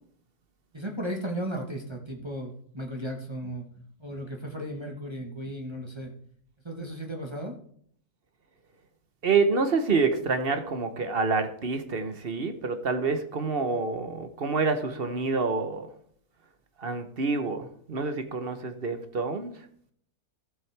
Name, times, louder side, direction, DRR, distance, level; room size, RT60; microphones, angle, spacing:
voice 1, 0.7-3.7 4.0-6.1 6.6-7.6, right 1 dB, 20° right, 0 dB, 1.2 m, -35 dB
voice 2, 9.2-15.9 16.8-19.6, right 4 dB, 45° right, 8 dB, 1.0 m, -27 dB
14.0 x 7.5 x 3.3 m, 0.62 s
omnidirectional pair, 1.6 m